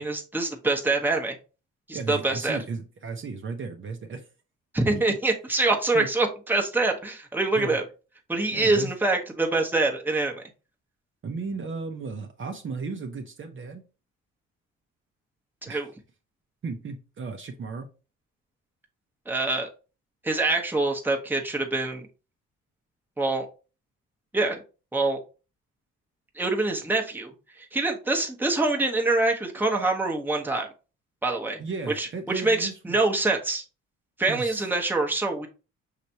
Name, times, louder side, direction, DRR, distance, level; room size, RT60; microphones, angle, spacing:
voice 1, 0.0-1.4 1.9-2.6 4.7-7.8 8.3-10.4 15.6-15.9 19.3-19.7 20.2-22.1 23.2-23.5 24.3-24.6 24.9-25.2 26.3-27.3 27.6-30.7 31.2-31.6 32.0-33.6 34.2-35.5, right 2 dB, 5° right, 1 dB, 1.0 m, -25 dB
voice 2, 1.9-4.3 5.9-6.1 7.5-7.8 8.5-8.9 11.2-13.8 15.7-15.8 16.6-17.9 31.6-33.0 34.3-34.6, right 4 dB, 40° right, 4 dB, 0.8 m, -35 dB
5.8 x 3.2 x 2.8 m, 0.33 s
cardioid pair, 90°, 30 cm